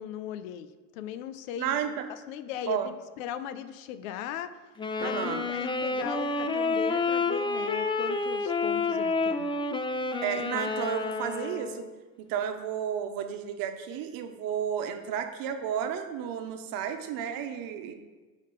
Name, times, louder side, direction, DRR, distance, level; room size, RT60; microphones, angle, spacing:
voice 1, 0.0-1.8 2.1-4.6 5.0-9.5, left 10 dB, 85° left, 12 dB, 0.6 m, -38 dB
voice 2, 1.6-2.1 2.7-2.9 5.0-5.5 10.2-11.9 12.3-17.9, right 8 dB, 60° right, 7 dB, 0.9 m, -32 dB
Wind instrument woodwind instrument, 4.8-12.0, left 3 dB, 15° left, 0.4 m, -29 dB
5.2 x 3.7 x 5.5 m, 1.3 s
supercardioid pair, 95°, 39 cm